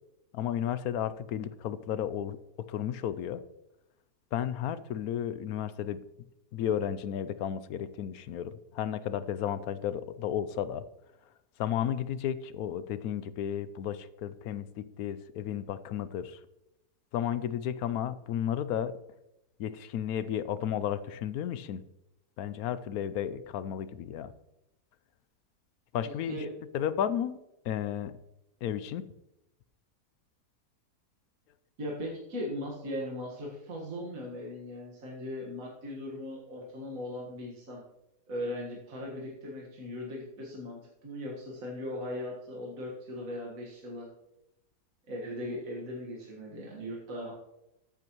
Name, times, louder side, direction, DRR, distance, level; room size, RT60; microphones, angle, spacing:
voice 1, 0.3-2.4 2.7-3.4 4.3-6.0 6.5-10.8 11.6-16.4 17.1-18.9 19.6-21.8 22.4-24.3 25.9-26.5 26.7-27.4 27.6-28.1 28.6-29.1, left 9 dB, 70° left, 14 dB, 1.0 m, -33 dB
voice 2, 31.8-37.8 38.3-44.1 45.1-47.3, left 1 dB, 60° right, -3 dB, 2.1 m, -38 dB
13.5 x 8.5 x 3.0 m, 0.89 s
omnidirectional pair, 1.7 m